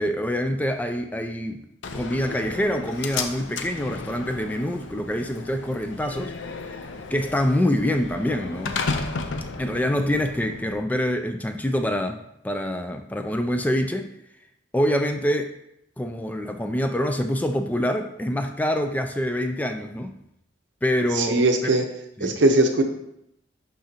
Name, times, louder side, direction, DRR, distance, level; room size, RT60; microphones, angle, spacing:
voice 1, 0.0-1.6 1.9-6.3 7.1-8.8 9.6-14.1 14.7-15.5 16.0-20.2 20.8-21.7 22.2-22.4, equal, 10° left, 6 dB, 0.3 m, -25 dB
Slam, 1.8-10.8, left 4 dB, 90° left, 0.6 m, -34 dB
voice 2, 21.2-21.8 22.2-22.8, right 2 dB, 70° right, 4 dB, 0.8 m, -19 dB
11.0 x 3.8 x 2.9 m, 0.79 s
head